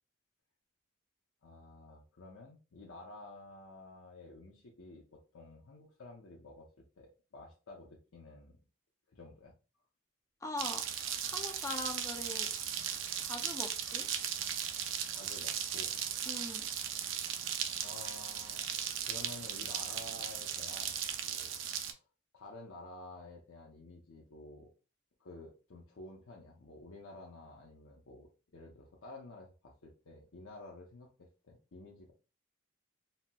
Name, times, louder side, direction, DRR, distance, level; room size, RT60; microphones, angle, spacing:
voice 1, 1.4-6.7 7.0-8.6 9.1-9.5 15.1-16.0 16.6-16.7 17.8-21.6 21.9-22.0 22.3-24.7 25.2-32.1, left 2 dB, 80° left, -2 dB, 0.6 m, -51 dB
voice 2, 10.4-10.8 11.3-12.5 13.2-14.1 16.3-16.7, left 2 dB, 15° left, 3 dB, 0.4 m, -41 dB
sound 1, 10.6-21.9, right 9 dB, 70° right, 0.4 m, -37 dB
4.1 x 2.0 x 2.2 m, 0.32 s
head